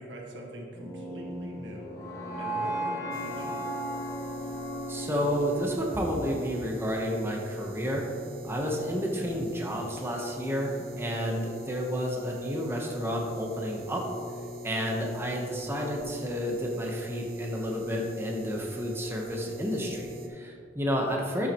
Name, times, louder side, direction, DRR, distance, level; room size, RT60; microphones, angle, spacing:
voice 1, 0.0-1.9 2.4-3.6, right 1 dB, 90° right, -1 dB, 1.6 m, -43 dB
sound 1, 0.7-6.9, right 1 dB, 20° left, 1.2 m, -36 dB
sound 2, 3.1-20.3, right 1 dB, 55° right, 0.9 m, -41 dB
voice 2, 4.9-8.0 8.4-14.0 14.6-21.5, equal, 15° right, 0 dB, 1.0 m, -31 dB
11.5 x 7.4 x 3.0 m, 2.4 s
head